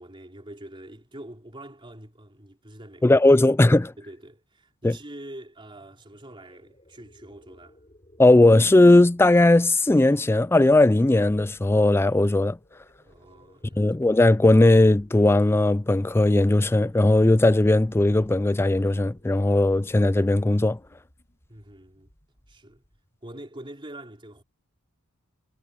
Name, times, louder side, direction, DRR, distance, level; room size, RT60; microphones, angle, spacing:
voice 1, 0.0-3.2 3.6-7.8 13.0-13.8 21.5-22.1 22.5-22.8 23.2-24.4, right 1 dB, 25° right, 3.9 m, -44 dB
voice 2, 3.0-3.9 4.8-4.9 8.2-12.6 13.8-20.8, left 2 dB, 10° left, 0.4 m, -18 dB
sound 1, 5.7-23.2, equal, 25° left, 5.4 m, -57 dB
head